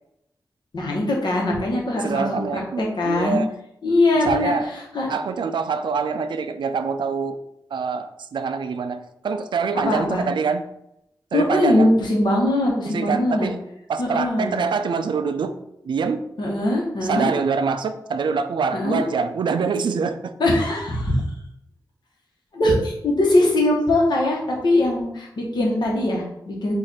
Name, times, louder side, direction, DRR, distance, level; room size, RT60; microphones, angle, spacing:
voice 1, 0.7-3.4 3.8-4.5 4.9-5.1 9.8-10.2 11.3-13.5 14.0-14.6 16.4-17.3 18.7-19.0 20.4-21.2 22.5-26.7, left 1 dB, 75° left, -1 dB, 1.2 m, -21 dB
voice 2, 1.9-3.5 4.1-4.7 5.1-7.4 7.7-10.7 11.3-11.9 12.9-13.6 13.9-15.6 15.8-16.3 17.0-20.3, right 5 dB, 90° right, 10 dB, 0.4 m, -25 dB
4.8 x 2.5 x 4.2 m, 0.83 s
wide cardioid pair, 135°, 8 cm